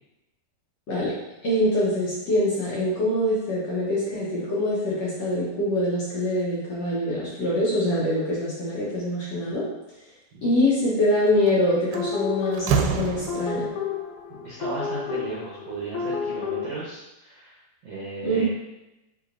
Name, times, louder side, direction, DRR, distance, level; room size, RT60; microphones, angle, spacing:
voice 1, 1.4-9.7 10.4-13.7 18.2-18.5, left 1 dB, 60° left, -8 dB, 1.9 m, -24 dB
Slam, 11.3-11.5 11.9-13.8, right 7 dB, 85° right, 2.4 m, -27 dB
sound 1, 11.9-16.8, left 6 dB, 80° left, 1.8 m, -31 dB
voice 2, 14.3-18.5, right 3 dB, 65° right, -6 dB, 1.5 m, -36 dB
9.0 x 4.1 x 2.6 m, 0.96 s
omnidirectional pair, 4.2 m